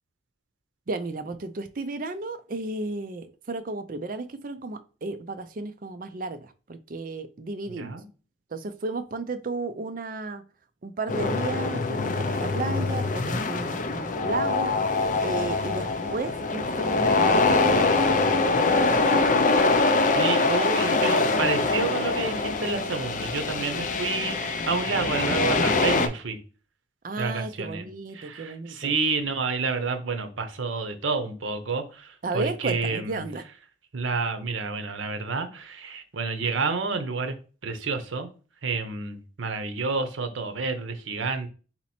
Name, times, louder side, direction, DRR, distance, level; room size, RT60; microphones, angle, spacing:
voice 1, 0.9-7.9 8.5-10.4 10.8-14.7 15.2-17.9 18.3-18.8 27.0-28.9 32.2-33.4, right 3 dB, 45° right, 0.5 m, -33 dB
voice 2, 7.7-8.0 20.1-26.4 27.2-27.8 28.1-33.2 33.9-37.3 37.6-38.3 38.6-41.5, right 4 dB, 90° right, 0.7 m, -29 dB
sound 1, 11.1-26.1, left 3 dB, 40° left, 0.4 m, -24 dB
4.1 x 2.9 x 4.2 m
head